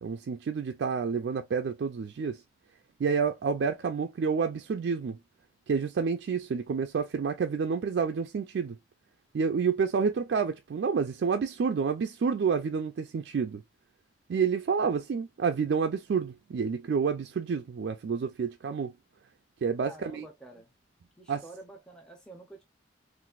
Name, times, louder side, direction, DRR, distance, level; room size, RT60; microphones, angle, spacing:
voice 1, 0.0-2.4 3.0-5.2 5.7-8.8 9.3-13.6 14.3-18.9 19.6-20.3 21.3-21.4, right 5 dB, 65° right, 0.3 m, -29 dB
voice 2, 19.8-20.7 21.2-22.6, right 2 dB, 5° left, 0.6 m, -49 dB
3.9 x 2.5 x 2.4 m
head